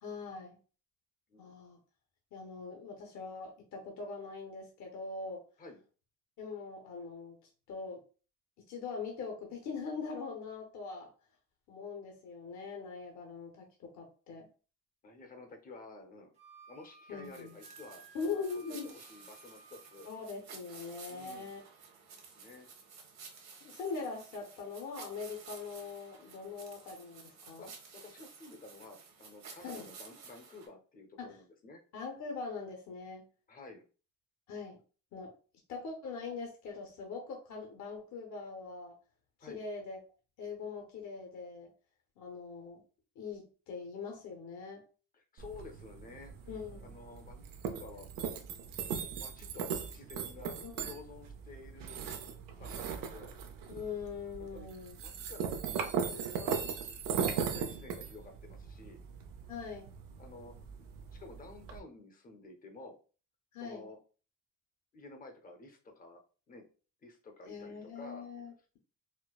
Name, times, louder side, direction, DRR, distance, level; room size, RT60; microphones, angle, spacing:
voice 1, 0.0-0.6 1.4-1.8 2.3-5.4 6.4-7.3 7.7-8.0 8.6-11.1 11.7-14.5 17.1-17.5 18.1-19.0 20.0-21.6 23.6-27.7 29.6-29.9 31.2-31.4 31.9-33.3 34.5-34.8 35.1-35.3 35.7-39.0 39.4-40.0 40.4-41.7 42.2-42.8 43.2-44.8 46.5-47.0 50.6-50.9 53.7-55.0 59.5-59.9 63.5-63.9 67.5-68.8, left 4 dB, 60° left, 2 dB, 0.8 m, -42 dB
voice 2, 15.0-16.3 16.7-18.0 18.5-20.1 21.1-21.5 22.4-22.7 27.6-31.8 33.5-33.8 39.4-39.6 45.1-46.3 46.8-48.4 49.1-52.0 52.6-53.3 54.4-56.6 57.1-59.0 60.2-63.0 63.6-64.0 64.9-66.2 66.5-66.7 67.0-68.3, left 2 dB, 25° left, 5 dB, 0.6 m, -51 dB
Wind instrument woodwind instrument, 16.3-20.1, right 4 dB, 20° right, 0.5 m, -58 dB
sound 1, 17.2-30.7, right 5 dB, 55° right, 0.9 m, -53 dB
sound 2, 45.4-61.8, right 7 dB, 90° right, 0.6 m, -39 dB
4.4 x 2.1 x 2.3 m, 0.37 s
cardioid pair, 155°, 32 cm